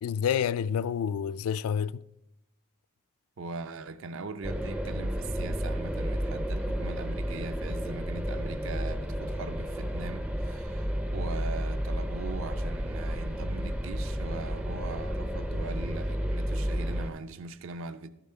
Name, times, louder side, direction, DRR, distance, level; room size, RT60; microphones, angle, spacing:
voice 1, 0.0-2.0, left 8 dB, 75° left, 0.3 m, -28 dB
voice 2, 3.4-18.1, right 3 dB, 60° right, 0.5 m, -40 dB
sound 1, 4.4-17.1, equal, 5° right, 0.4 m, -32 dB
12.0 x 6.9 x 4.3 m
head